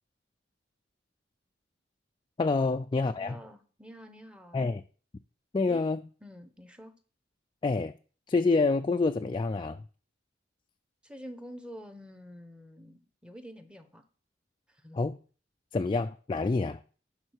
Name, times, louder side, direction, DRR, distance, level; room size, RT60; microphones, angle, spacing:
voice 1, 2.4-3.4 4.5-4.8 5.5-6.0 7.6-8.0 8.3-9.8 15.0-15.2 15.7-16.8, left 3 dB, 25° left, 0.3 m, -27 dB
voice 2, 3.2-4.6 5.7-5.8 6.2-6.9 11.0-14.0 14.7-15.0, equal, 5° right, 0.9 m, -47 dB
11.0 x 3.8 x 6.4 m
head